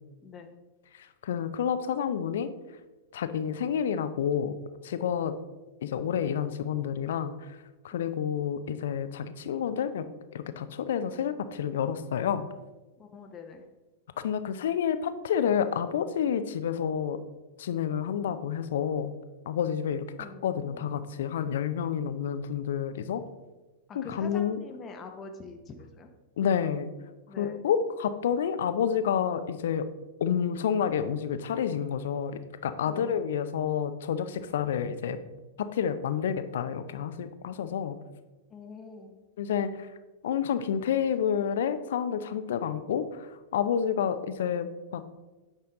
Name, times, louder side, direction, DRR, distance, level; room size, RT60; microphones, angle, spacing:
voice 1, 0.2-0.5 7.9-8.1 13.0-13.6 20.2-21.1 23.9-26.1 27.3-27.6 32.9-33.2 38.5-39.2, left 4 dB, 25° left, 4 dB, 0.8 m, -45 dB
voice 2, 1.0-2.5 3.1-4.5 4.8-5.4 5.8-7.6 7.8-10.1 10.3-12.5 14.2-17.2 17.6-19.1 19.5-20.1 20.4-23.2 23.9-24.6 26.4-26.9 27.4-29.9 30.2-35.2 35.6-38.0 39.4-39.9 40.2-45.0, left 8 dB, 60° left, 11 dB, 0.5 m, -29 dB
8.8 x 5.7 x 3.8 m, 1.2 s
figure-of-eight pair, 95°, 0 cm